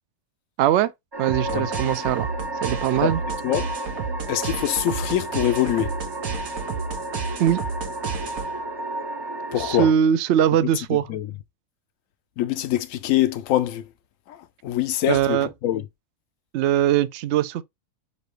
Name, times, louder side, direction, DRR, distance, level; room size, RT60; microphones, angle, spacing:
voice 1, 0.6-0.9 1.2-2.3 2.6-3.2 7.4-7.6 9.6-11.1 15.1-15.5 16.5-17.6, right 10 dB, 65° right, 0.7 m, -21 dB
sound 1, 1.1-9.9, right 2 dB, 30° right, 0.5 m, -32 dB
sound 2, 1.3-8.7, right 5 dB, 90° right, 1.5 m, -32 dB
voice 2, 4.3-6.0 9.5-9.9 11.1-11.3 12.4-13.9 14.3-15.9, left 12 dB, 70° left, 1.0 m, -24 dB
6.8 x 2.3 x 3.2 m
omnidirectional pair, 1.5 m